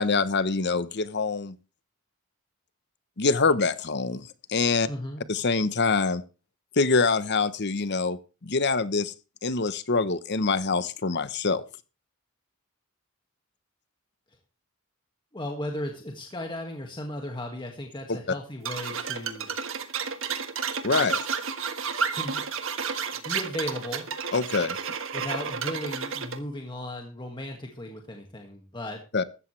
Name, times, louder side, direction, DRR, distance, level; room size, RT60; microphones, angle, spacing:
voice 1, 0.0-1.6 3.2-4.9 5.3-6.2 6.8-9.1 9.4-11.6 18.1-18.2 20.8-21.2 24.3-24.8 29.1-29.2, left 4 dB, 50° left, 15 dB, 1.0 m, -25 dB
voice 2, 4.9-5.3 15.3-19.5 22.1-22.4 23.2-24.1 25.1-29.0, left 1 dB, 20° left, 2 dB, 1.9 m, -36 dB
sound 1, 18.6-26.4, right 6 dB, 65° right, 1.6 m, -31 dB
15.0 x 13.5 x 3.3 m, 0.33 s
head